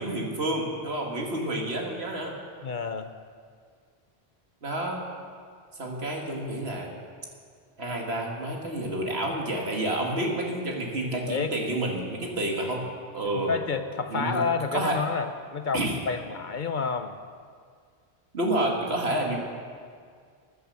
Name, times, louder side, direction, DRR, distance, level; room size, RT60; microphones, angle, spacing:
voice 1, 0.0-2.3 4.6-5.0 5.8-6.9 7.8-12.9 13.1-13.6 14.1-14.4 14.7-15.0 15.7-15.9 18.3-19.4, right 1 dB, 75° right, 0 dB, 2.4 m, -29 dB
voice 2, 2.6-3.1 11.3-11.5 13.3-17.2, left 5 dB, 50° left, 8 dB, 0.8 m, -29 dB
15.0 x 11.0 x 6.9 m, 2.1 s
omnidirectional pair, 1.1 m